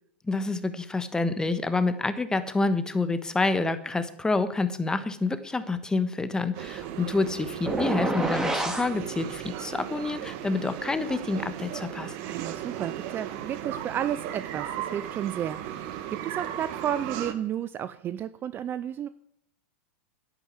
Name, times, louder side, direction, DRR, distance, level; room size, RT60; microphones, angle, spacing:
voice 1, 0.3-12.1, left 3 dB, 10° left, 11 dB, 1.3 m, -28 dB
sound 1, 6.5-17.3, right 11 dB, 50° right, 1.5 m, -36 dB
sound 2, 7.7-8.9, right 1 dB, 5° right, 2.1 m, -27 dB
voice 2, 12.2-19.1, right 10 dB, 30° right, 14 dB, 0.6 m, -32 dB
10.5 x 9.0 x 8.0 m, 0.76 s
hypercardioid pair, 110°, 7 cm